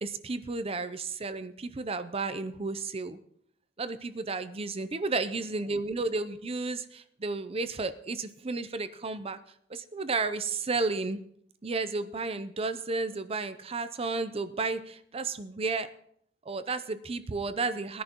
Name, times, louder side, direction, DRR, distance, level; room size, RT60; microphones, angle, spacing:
voice 1, 0.0-3.2 3.8-9.4 9.7-11.2 11.6-15.9 16.5-18.0, right 3 dB, 30° right, 11 dB, 0.6 m, -32 dB
20.0 x 10.0 x 3.0 m, 0.68 s
head